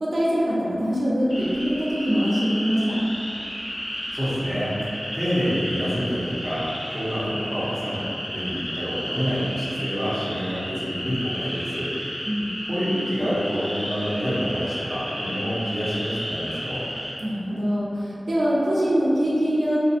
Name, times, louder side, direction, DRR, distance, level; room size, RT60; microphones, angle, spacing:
voice 1, 0.0-3.0 12.2-12.5 17.2-19.8, equal, 80° right, -7 dB, 0.4 m, -23 dB
sound 1, 1.3-17.1, equal, 50° left, 0.9 m, -33 dB
voice 2, 4.1-11.9 12.7-16.8, equal, 5° right, -11 dB, 0.8 m, -27 dB
2.4 x 2.2 x 2.7 m, 2.8 s
wide cardioid pair, 80°, 0 cm